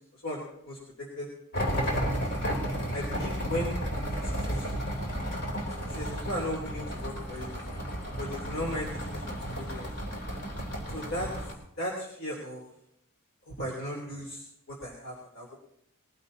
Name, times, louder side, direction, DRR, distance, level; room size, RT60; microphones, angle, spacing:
voice 1, 0.1-2.0 2.9-3.8 4.1-4.8 5.7-7.5 8.2-9.9 10.9-11.3 11.8-12.6 13.4-15.5, equal, 65° left, -3 dB, 3.5 m, -37 dB
sound 1, 1.5-11.5, equal, 50° left, 3.7 m, -33 dB
22.0 x 15.0 x 2.9 m, 0.74 s
head